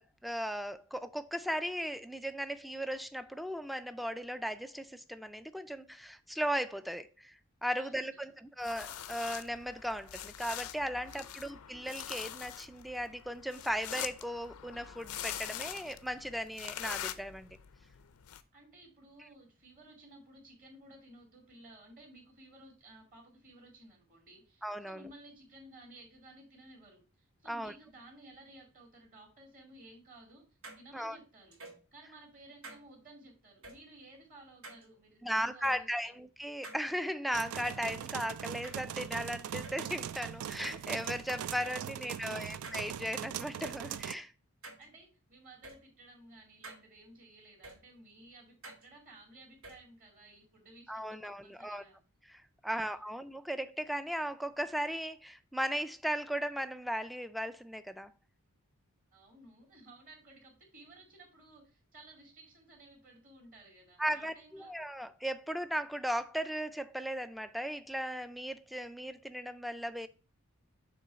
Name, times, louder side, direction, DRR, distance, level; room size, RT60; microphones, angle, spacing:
voice 1, 0.0-17.5 24.6-25.1 27.5-27.7 30.9-31.2 35.2-44.3 50.9-51.8 52.3-58.1 64.0-70.1, equal, ahead, 0.3 m, -37 dB
voice 2, 7.8-8.4 11.1-11.7 18.5-30.5 30.8-31.6 31.9-36.1 41.7-42.7 44.6-52.0 52.7-53.0 59.1-64.7, right 2 dB, 40° right, 2.3 m, -56 dB
sound 1, 8.6-18.4, left 10 dB, 90° left, 0.5 m, -44 dB
sound 2, 30.6-30.8 31.5-31.8 32.6-32.8 33.6-33.8 34.6-34.8 35.6-35.8 36.6-36.8 37.6-37.8 38.6-39.2 39.6-39.8 40.6-40.8 41.6-41.8 42.6-42.8 43.6-43.8 44.6-44.8 45.6-45.8 46.6-46.8 47.6-47.8 48.6-48.8 49.6-49.8, right 2 dB, 70° right, 2.6 m, -48 dB
sound 3, 37.3-44.1, right 9 dB, 90° right, 0.4 m, -41 dB
6.8 x 3.1 x 5.2 m
head